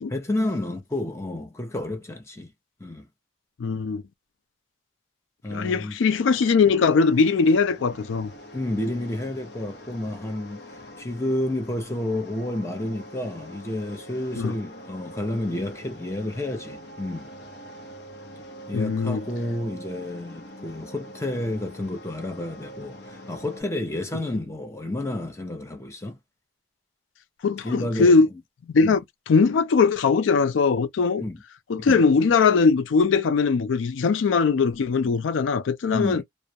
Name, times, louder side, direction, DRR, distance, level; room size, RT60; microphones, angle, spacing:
voice 1, 0.1-2.5 2.8-3.1 5.4-6.0 8.5-17.3 18.7-26.2 27.6-28.2 28.8-29.0 31.2-31.4 31.8-32.0 35.9-36.2, left 1 dB, 15° left, 0.6 m, -30 dB
voice 2, 3.6-4.0 5.5-8.3 14.4-14.5 18.7-19.2 27.4-28.3 28.7-29.0 29.3-31.2 31.7-36.2, left 4 dB, 85° left, 0.4 m, -20 dB
Ship Crane, 6.1-23.6, equal, 60° left, 0.7 m, -44 dB
2.2 x 2.0 x 2.6 m
head